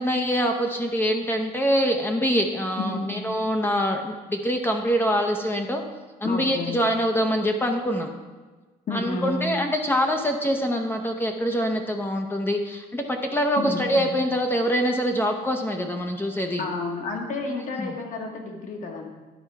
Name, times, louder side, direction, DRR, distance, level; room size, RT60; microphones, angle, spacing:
voice 1, 0.0-5.8 6.2-8.1 8.9-16.7 17.8-18.0, equal, 15° left, 3 dB, 0.7 m, -24 dB
voice 2, 2.8-3.2 6.2-6.8 8.9-9.5 13.6-14.1 16.6-19.1, left 3 dB, 50° left, 2 dB, 1.5 m, -31 dB
11.0 x 4.4 x 4.7 m, 1.3 s
cardioid pair, 110°, 17 cm